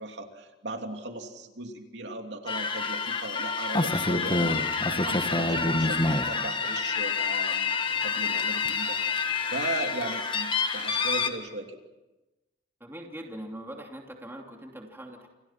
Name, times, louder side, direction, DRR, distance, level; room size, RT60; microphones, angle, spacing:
voice 1, 0.0-7.7 8.0-9.0 9.5-11.8, right 2 dB, 70° right, 4 dB, 3.0 m, -37 dB
sound 1, 2.5-11.3, left 4 dB, 30° left, 1.8 m, -27 dB
voice 2, 12.8-15.3, right 1 dB, 15° right, 1 dB, 2.9 m, -41 dB
29.5 x 29.0 x 5.9 m, 1.1 s
head